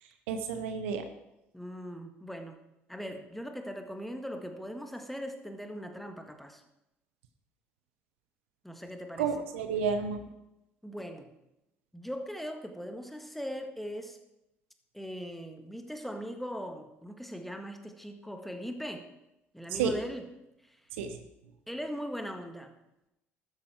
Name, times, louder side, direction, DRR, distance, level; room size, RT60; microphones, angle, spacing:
voice 1, 0.3-1.0 9.2-10.3 19.7-19.9 21.0-21.2, right 6 dB, 75° right, 8 dB, 1.0 m, -31 dB
voice 2, 1.5-2.6 2.9-6.6 8.6-9.4 10.8-11.3 11.9-14.2 14.9-19.0 19.5-20.3 20.6-20.8 21.7-22.7, equal, ahead, 5 dB, 1.8 m, -40 dB
12.5 x 9.4 x 4.5 m, 0.89 s
figure-of-eight pair, 55°, 7 cm